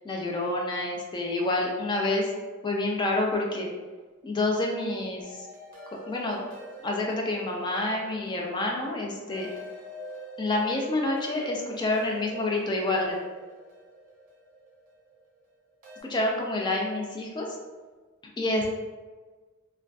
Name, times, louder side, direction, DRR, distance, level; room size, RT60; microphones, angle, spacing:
voice 1, 0.0-2.3 2.6-3.7 4.2-5.2 6.1-6.4 6.8-9.5 10.4-13.2 16.1-17.5 18.4-18.7, left 2 dB, 20° left, -1 dB, 0.3 m, -28 dB
sound 1, 5.2-16.0, equal, 40° right, 0.5 m, -46 dB
2.4 x 2.2 x 2.2 m, 1.4 s
head